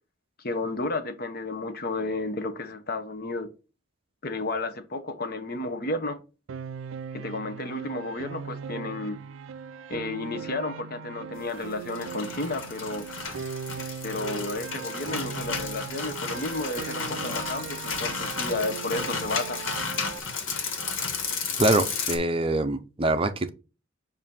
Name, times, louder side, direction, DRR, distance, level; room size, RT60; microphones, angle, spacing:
voice 1, 0.4-3.5 4.2-6.2 7.1-9.2 9.9-13.1 14.0-19.6, left 2 dB, 50° left, 0.8 m, -32 dB
Piano, 6.5-20.2, right 6 dB, 85° right, 0.4 m, -38 dB
sound 1, 11.7-22.2, left 5 dB, 85° left, 1.5 m, -33 dB
voice 2, 21.6-23.5, right 2 dB, 25° right, 0.5 m, -24 dB
7.3 x 2.6 x 5.6 m
head